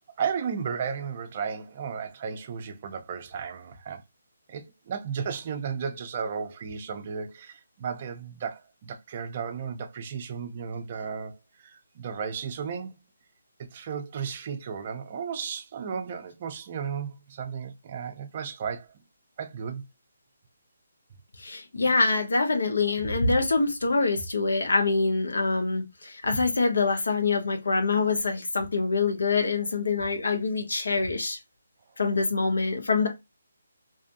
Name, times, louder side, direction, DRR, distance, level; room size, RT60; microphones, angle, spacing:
voice 1, 0.2-4.0 4.5-12.9 13.6-18.9 19.4-19.8 21.8-21.9, right 6 dB, 30° right, 0.5 m, -34 dB
voice 2, 21.4-31.4 32.0-33.1, left 3 dB, 75° left, 1.0 m, -25 dB
2.6 x 2.4 x 2.5 m
hypercardioid pair, 170°, 0 cm